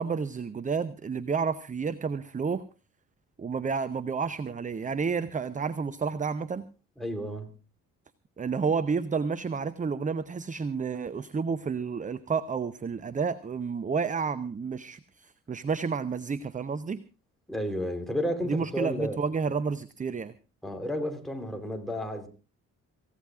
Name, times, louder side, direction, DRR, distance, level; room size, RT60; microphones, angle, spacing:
voice 1, 0.0-2.6 3.4-6.7 8.4-17.0 18.4-20.3, right 5 dB, 20° right, 15 dB, 0.7 m, -30 dB
voice 2, 7.0-7.5 17.5-19.2 20.6-22.3, equal, ahead, 4 dB, 3.7 m, -32 dB
26.5 x 16.0 x 2.5 m, 0.34 s
figure-of-eight pair, 40°, 44 cm